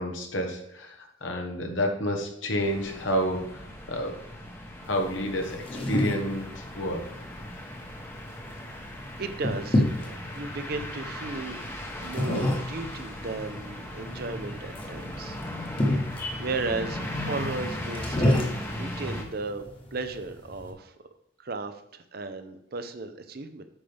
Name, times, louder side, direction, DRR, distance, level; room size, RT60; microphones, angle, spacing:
voice 1, 0.0-3.6 3.9-4.2 4.8-7.0, equal, 80° left, 4 dB, 1.3 m, -29 dB
sound 1, 2.6-19.2, left 1 dB, 10° left, 0.9 m, -38 dB
sound 2, 4.8-20.7, left 1 dB, 30° left, 1.3 m, -31 dB
voice 2, 8.5-8.9 9.2-11.6 12.0-15.4 15.7-16.1 16.4-19.7 19.9-20.9 21.4-23.6, right 3 dB, 55° right, 9 dB, 0.7 m, -35 dB
8.8 x 5.6 x 3.4 m, 0.77 s
head